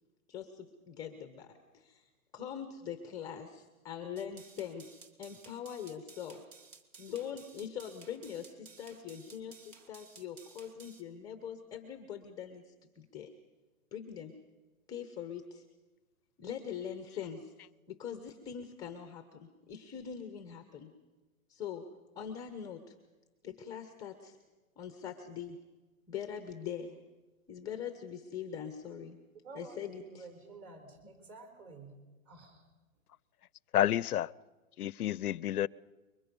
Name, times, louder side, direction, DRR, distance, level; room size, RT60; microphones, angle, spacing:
voice 1, 0.3-6.4 7.0-13.3 13.9-14.3 14.9-15.6 16.4-17.5 17.9-20.9 21.5-21.9 22.1-22.9 23.4-24.4 24.8-25.6 26.1-27.0 27.5-29.2 29.5-30.3, left 8 dB, 10° left, 0.8 m, -43 dB
sound 1, 4.2-11.0, right 5 dB, 60° right, 2.6 m, -56 dB
voice 2, 29.4-32.6, right 3 dB, 30° right, 4.6 m, -51 dB
voice 3, 33.7-34.3 34.8-35.7, left 12 dB, 90° left, 0.6 m, -29 dB
25.5 x 23.0 x 5.3 m
hypercardioid pair, 155°, 43 cm